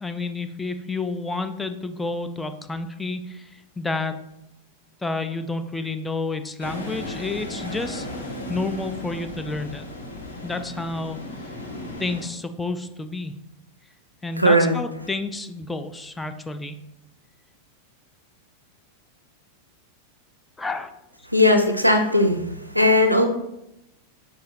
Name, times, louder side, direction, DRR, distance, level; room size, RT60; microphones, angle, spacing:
voice 1, 0.0-4.2 5.0-9.9 10.4-11.2 12.0-13.4 14.2-16.8 20.6-20.9, left 3 dB, 10° left, 8 dB, 0.3 m, -30 dB
sound 1, 6.6-12.2, left 1 dB, 80° left, 1.0 m, -35 dB
voice 2, 14.4-14.7 21.3-22.4 22.7-23.2, left 1 dB, 90° right, 4 dB, 0.4 m, -17 dB
5.5 x 2.3 x 3.8 m, 0.85 s
figure-of-eight pair, 90°, 0 cm